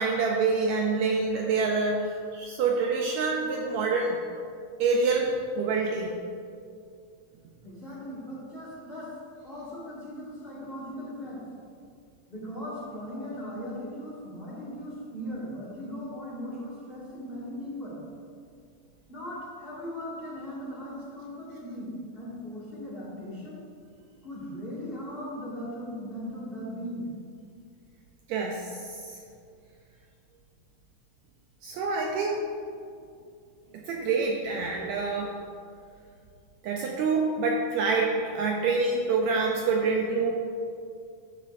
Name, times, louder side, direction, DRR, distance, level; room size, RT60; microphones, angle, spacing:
voice 1, 0.0-4.2 4.8-6.1 28.3-29.2 31.6-32.4 33.7-35.4 36.6-40.3, right 4 dB, 80° right, 0 dB, 1.8 m, -26 dB
voice 2, 7.6-9.1 9.4-11.4 12.3-18.0 19.1-23.6 24.2-27.1, equal, 20° left, -8 dB, 1.7 m, -38 dB
11.0 x 7.4 x 2.6 m, 2.4 s
omnidirectional pair, 3.6 m